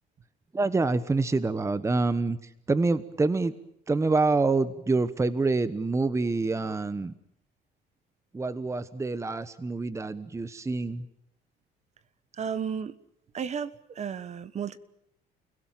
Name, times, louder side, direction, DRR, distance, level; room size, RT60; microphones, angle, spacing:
voice 1, 0.5-2.4 2.7-3.5 3.9-7.1 8.3-11.0, right 3 dB, 15° right, 14 dB, 1.1 m, -26 dB
voice 2, 12.4-12.9 13.3-14.8, right 7 dB, 40° right, 15 dB, 1.4 m, -33 dB
30.0 x 17.0 x 9.1 m, 0.76 s
cardioid pair, 110°, 17 cm